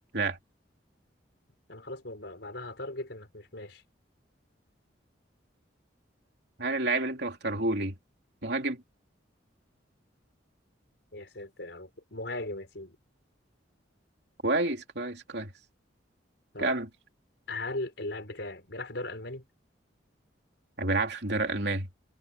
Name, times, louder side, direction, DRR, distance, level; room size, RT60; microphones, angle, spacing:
voice 1, 1.7-3.8 11.1-13.0 16.5-16.7 17.5-19.4, left 2 dB, 65° left, 5.8 m, -38 dB
voice 2, 6.6-7.9 8.4-8.8 14.4-15.5 16.6-16.9 20.8-21.9, right 2 dB, 60° right, 3.3 m, -29 dB
head